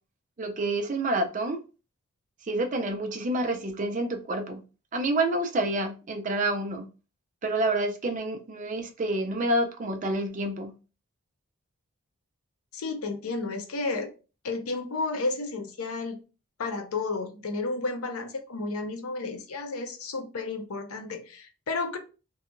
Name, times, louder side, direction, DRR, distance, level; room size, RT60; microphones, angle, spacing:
voice 1, 0.4-1.6 2.4-4.6 4.9-6.9 7.4-10.7, right 1 dB, 35° right, 0.4 m, -28 dB
voice 2, 12.7-14.1 14.4-16.2 16.6-22.0, left 3 dB, 85° left, 0.5 m, -32 dB
2.7 x 2.3 x 2.4 m
head